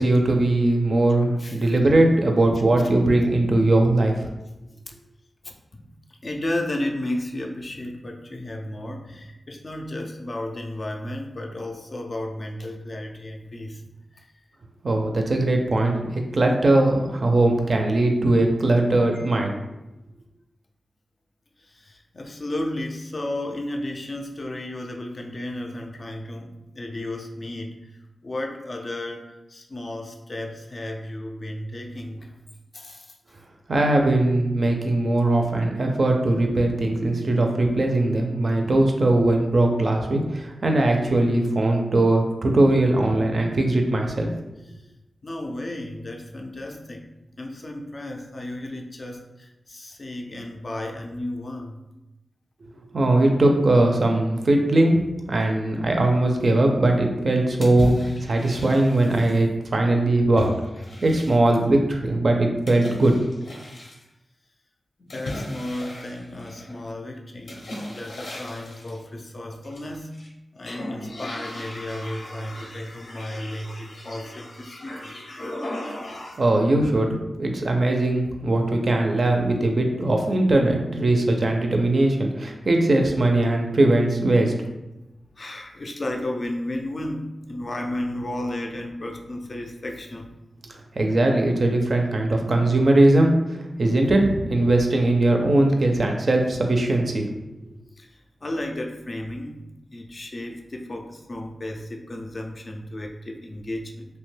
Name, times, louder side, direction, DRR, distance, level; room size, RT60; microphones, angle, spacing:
voice 1, 0.0-4.3 14.8-19.5 33.7-44.3 52.9-60.5 61.0-63.2 76.4-84.5 91.0-93.3 93.8-97.3, right 2 dB, 55° right, 3 dB, 0.4 m, -20 dB
voice 2, 1.4-1.8 4.9-5.0 5.4-5.9 6.2-13.8 14.1-14.4 19.1-19.5 21.6-32.4 32.7-33.2 44.7-44.8 45.2-47.1 47.4-51.8 65.0-67.6 67.9-70.2 70.5-75.2 85.4-90.3 98.0-99.6 99.9-104.2, left 1 dB, 45° left, 2 dB, 0.4 m, -33 dB
sound 1, 57.6-59.4 60.4-61.6 62.7-64.0 65.1-66.8 67.5-69.0 69.6-70.3 70.6-76.6, left 1 dB, 80° left, 0.6 m, -36 dB
2.8 x 2.2 x 3.1 m, 0.97 s
wide cardioid pair, 95°, 0 cm